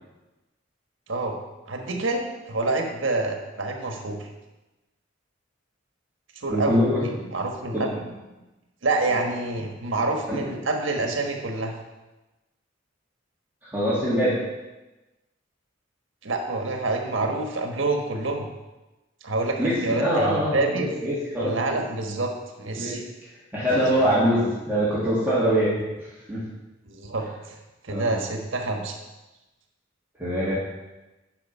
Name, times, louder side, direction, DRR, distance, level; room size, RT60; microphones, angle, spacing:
voice 1, 1.7-4.3 6.3-6.8 7.3-7.9 8.8-11.7 16.2-18.5 19.2-20.9 21.4-22.3 22.6-23.0 24.0-24.2 26.8-27.6 27.8-29.0, right 2 dB, 75° right, 2 dB, 1.4 m, -27 dB
voice 2, 6.5-7.3 7.7-7.9 10.3-10.5 13.6-14.4 19.6-21.6 22.8-23.0 23.5-26.4 27.9-28.1 30.2-30.6, equal, 10° right, -10 dB, 2.4 m, -24 dB
11.0 x 5.1 x 5.6 m, 1.1 s
head